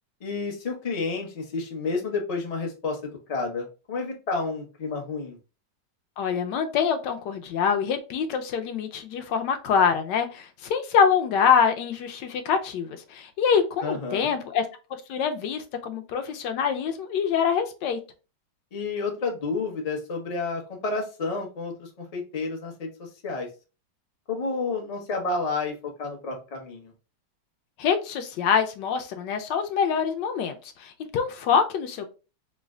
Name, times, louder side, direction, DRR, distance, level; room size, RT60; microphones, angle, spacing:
voice 1, 0.2-5.4 13.8-14.3 18.7-23.5 24.3-26.9, left 3 dB, 55° left, 1 dB, 0.4 m, -30 dB
voice 2, 6.2-14.7 15.1-18.0 27.8-32.0, left 7 dB, 75° left, 7 dB, 1.2 m, -25 dB
3.1 x 2.1 x 3.5 m, 0.32 s
omnidirectional pair, 2.0 m